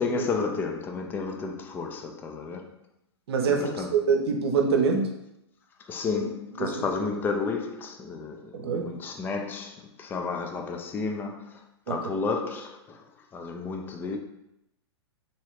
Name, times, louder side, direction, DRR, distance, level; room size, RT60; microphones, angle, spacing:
voice 1, 0.0-2.8 3.5-4.1 5.8-14.2, left 4 dB, 15° left, 0.3 m, -32 dB
voice 2, 3.3-5.1 6.6-6.8 8.5-8.9, right 5 dB, 65° right, 0.7 m, -25 dB
3.0 x 2.9 x 3.1 m
hypercardioid pair, 115°, 14 cm